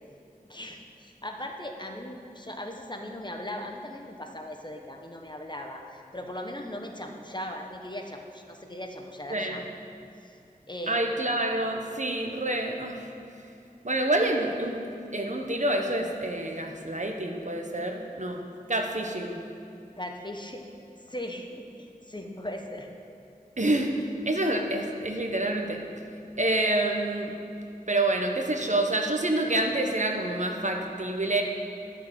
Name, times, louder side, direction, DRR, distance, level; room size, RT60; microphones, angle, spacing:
voice 1, 0.5-9.6 10.2-10.3 10.7-11.1 20.0-20.6 21.1-22.9, left 1 dB, 30° left, 2 dB, 1.3 m, -38 dB
voice 2, 9.3-9.6 10.9-13.0 13.8-14.8 15.1-18.4 18.7-19.4 23.6-25.8 26.4-27.3 27.9-31.4, right 1 dB, 50° right, 2 dB, 1.2 m, -27 dB
11.5 x 6.7 x 7.9 m, 2.7 s
wide cardioid pair, 40°, 16 cm